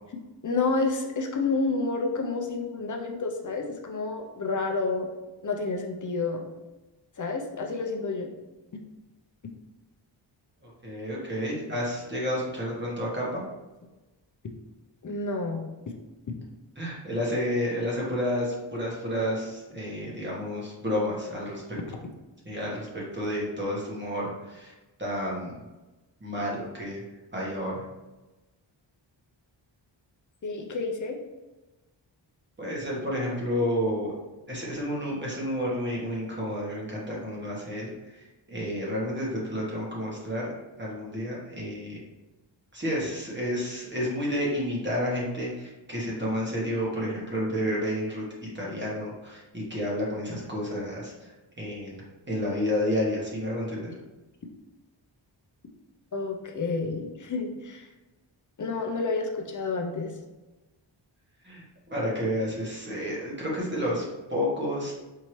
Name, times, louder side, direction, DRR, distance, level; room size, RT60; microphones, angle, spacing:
voice 1, 0.4-5.1 5.4-6.4 7.2-8.3 15.0-15.6 16.3-16.4 30.4-31.2 56.1-57.9 58.6-60.1, left 3 dB, 40° left, 3 dB, 0.6 m, -29 dB
voice 2, 10.6-13.4 16.8-21.8 22.4-24.7 25.0-25.6 26.2-27.0 27.3-27.8 32.6-34.1 34.5-42.0 42.7-53.9 61.4-61.6 61.9-64.0 64.3-64.9, equal, 25° right, -5 dB, 1.1 m, -30 dB
4.6 x 2.7 x 3.1 m, 1.1 s
wide cardioid pair, 125°, 47 cm